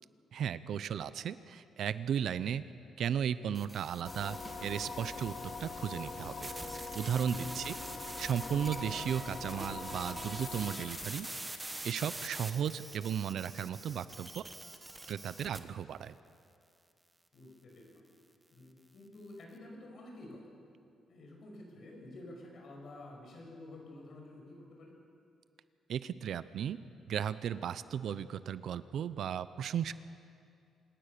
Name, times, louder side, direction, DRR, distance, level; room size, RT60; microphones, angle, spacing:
voice 1, 0.3-2.6 3.0-5.3 5.6-6.5 6.9-7.7 8.2-11.3 11.8-14.4 15.1-16.2 25.9-26.8 27.1-29.9, right 8 dB, 60° right, 15 dB, 0.6 m, -35 dB
sound 1, 3.5-4.6 6.4-15.6, right 2 dB, 10° right, 1.3 m, -45 dB
sound 2, 4.0-10.7, left 3 dB, 25° left, 2.4 m, -43 dB
voice 2, 7.3-7.6 17.3-18.0 18.5-20.5 21.1-24.9, left 1 dB, 50° left, 0 dB, 6.2 m, -50 dB
sound 3, 10.4-13.7, left 8 dB, 65° left, 2.1 m, -52 dB
26.0 x 19.0 x 6.8 m, 2.5 s
cardioid pair, 150°, 0 cm